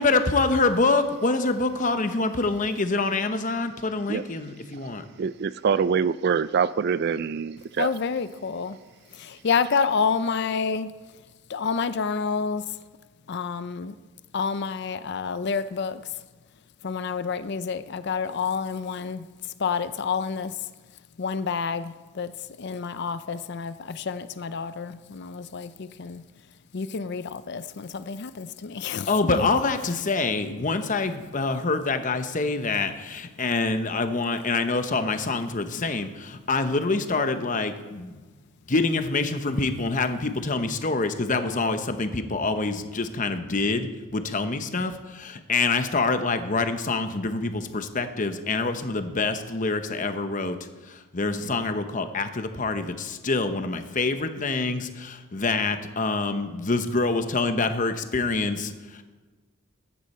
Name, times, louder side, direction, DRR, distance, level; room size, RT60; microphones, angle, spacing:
voice 1, 0.0-5.0 29.1-38.2 38.6-50.6 50.9-58.7, left 3 dB, 35° left, 9 dB, 0.9 m, -26 dB
voice 2, 5.2-7.9, right 6 dB, 50° right, 16 dB, 0.3 m, -25 dB
voice 3, 7.8-8.8 9.2-10.9 11.5-12.6 13.3-13.9 14.3-16.0 16.8-19.2 19.6-20.5 21.2-22.3 22.6-26.2 26.7-29.1, left 5 dB, 55° left, 13 dB, 0.5 m, -28 dB
15.0 x 10.0 x 4.3 m, 1.3 s
head